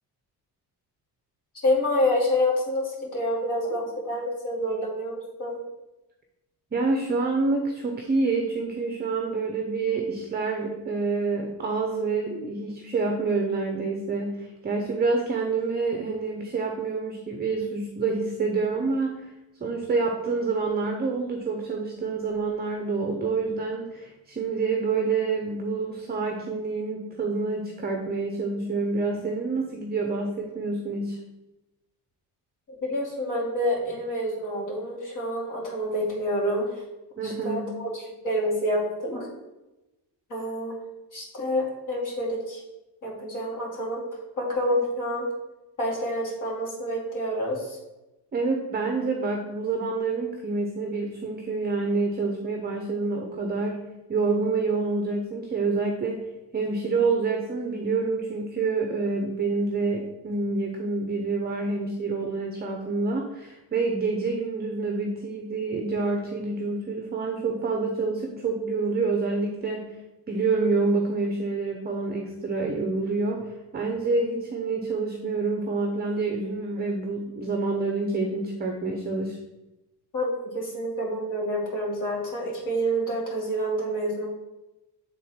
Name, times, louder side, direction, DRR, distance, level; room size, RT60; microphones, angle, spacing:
voice 1, 1.6-5.6 32.8-36.8 37.2-37.9 38.2-39.3 40.3-40.8 41.1-42.6 43.0-44.0 44.4-45.3 45.8-47.8 80.1-84.3, equal, 45° left, -4 dB, 2.6 m, -28 dB
voice 2, 6.7-19.2 19.6-31.2 37.2-37.7 48.3-56.3 56.5-70.0 70.3-79.4, right 3 dB, 25° right, 3 dB, 0.6 m, -27 dB
8.2 x 3.8 x 4.2 m, 1.0 s
cardioid pair, 150°, 42 cm